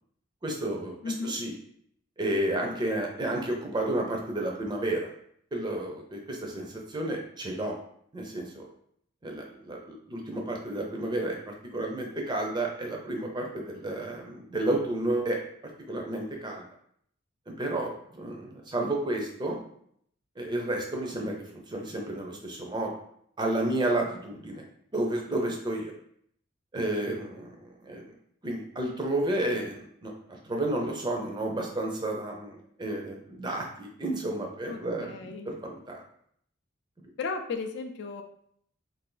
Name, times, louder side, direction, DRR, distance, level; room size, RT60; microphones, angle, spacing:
voice 1, 0.4-1.5 2.2-5.1 5.5-7.8 8.1-8.7 9.2-11.4 11.7-15.4 15.9-16.6 17.5-19.6 20.4-22.9 23.4-24.6 24.9-25.9 26.7-28.0 28.4-36.0, right 1 dB, 20° right, 1 dB, 0.5 m, -31 dB
voice 2, 1.0-1.3 34.7-35.5 37.2-38.2, left 4 dB, 55° left, 5 dB, 0.3 m, -35 dB
2.6 x 2.5 x 3.7 m, 0.67 s
head